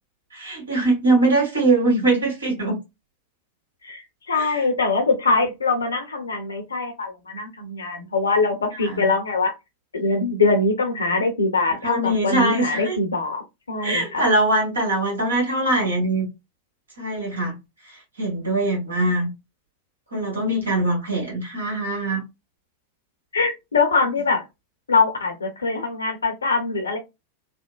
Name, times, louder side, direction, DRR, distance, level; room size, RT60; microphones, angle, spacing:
voice 1, 0.3-2.8 4.3-4.5 8.8-9.1 11.8-13.0 13.8-16.3 17.0-17.6 18.2-19.3 20.1-22.2, right 2 dB, 75° right, 1.5 m, -22 dB
voice 2, 3.8-9.5 9.9-13.4 13.7-14.2 23.3-24.4 24.9-27.0, left 3 dB, 75° left, 0.8 m, -23 dB
3.4 x 2.1 x 2.3 m
figure-of-eight pair, 90°, 0 cm